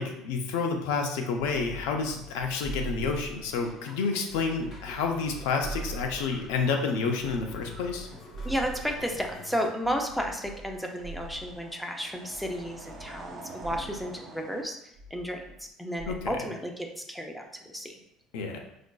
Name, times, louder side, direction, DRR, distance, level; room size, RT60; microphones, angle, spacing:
voice 1, 0.0-8.1 16.1-16.2 18.3-18.6, left 4 dB, 90° left, 3 dB, 0.5 m, -29 dB
sound 1, 1.4-3.8 4.3-6.7 7.2-9.4 9.8-11.7 12.3-13.3 13.6-14.1 15.0-15.7 16.0-16.4, right 2 dB, 75° right, 0.8 m, -42 dB
sound 2, 2.0-9.7, left 2 dB, 35° left, 0.9 m, -50 dB
sound 3, 4.6-5.5 5.8-14.6, right 3 dB, 30° right, 0.8 m, -49 dB
voice 2, 8.4-18.0, equal, ahead, 2 dB, 0.4 m, -33 dB
4.7 x 2.5 x 2.2 m, 0.80 s
cardioid pair, 130°, 0 cm